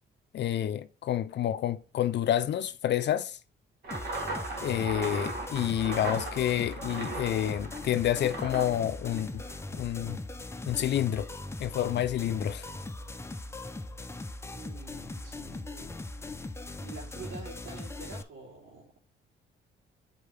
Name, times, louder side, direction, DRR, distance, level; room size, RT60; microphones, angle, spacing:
voice 1, 0.3-3.4 4.6-9.4 9.8-10.2 10.7-11.3 11.6-12.7, left 11 dB, 60° left, 0.5 m, -29 dB
sound 1, 3.8-9.7, right 2 dB, 55° right, 2.0 m, -38 dB
sound 2, 3.9-18.2, left 2 dB, 15° left, 0.6 m, -40 dB
voice 2, 14.5-16.0 16.8-18.9, right 4 dB, 90° right, 2.7 m, -47 dB
4.7 x 4.2 x 5.6 m
cardioid pair, 90°, 20 cm